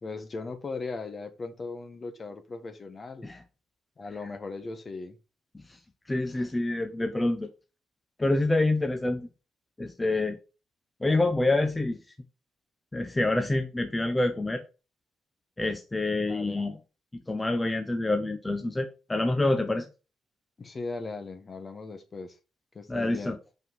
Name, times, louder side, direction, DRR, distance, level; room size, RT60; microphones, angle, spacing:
voice 1, 0.0-3.3 4.0-5.2 16.1-16.6 20.6-22.4 22.7-23.3, left 3 dB, 35° left, 1.3 m, -38 dB
voice 2, 6.1-7.5 8.2-9.3 9.8-10.4 11.0-12.0 12.9-14.6 15.6-16.8 17.3-19.9 22.9-23.4, left 2 dB, 15° left, 0.9 m, -27 dB
5.7 x 5.4 x 5.6 m
cardioid pair, 90°, 0 cm